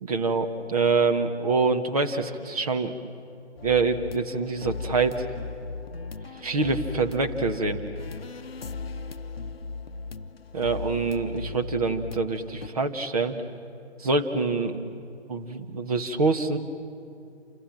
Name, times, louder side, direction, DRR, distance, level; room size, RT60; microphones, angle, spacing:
voice 1, 0.0-2.9 3.6-5.2 6.4-7.8 10.5-13.4 14.0-14.8 15.3-16.6, right 4 dB, 30° right, 7 dB, 1.4 m, -25 dB
sound 1, 3.6-12.7, left 4 dB, 55° left, 0.8 m, -37 dB
28.0 x 25.5 x 7.6 m, 2.6 s
figure-of-eight pair, 145°, 35 cm